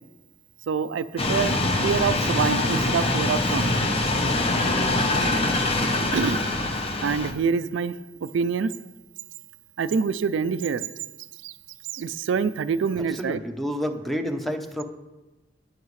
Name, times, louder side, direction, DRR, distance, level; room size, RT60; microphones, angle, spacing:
voice 1, 0.7-1.6 1.8-3.8 6.1-6.4 7.0-7.9 8.2-8.7 9.8-10.9 11.4-11.5 11.9-13.4, right 6 dB, 90° right, 14 dB, 0.4 m, -25 dB
sound 1, 1.2-7.3, left 2 dB, 30° left, 0.8 m, -24 dB
voice 2, 13.0-14.8, equal, ahead, 5 dB, 0.7 m, -29 dB
10.5 x 9.8 x 3.2 m, 1.1 s
head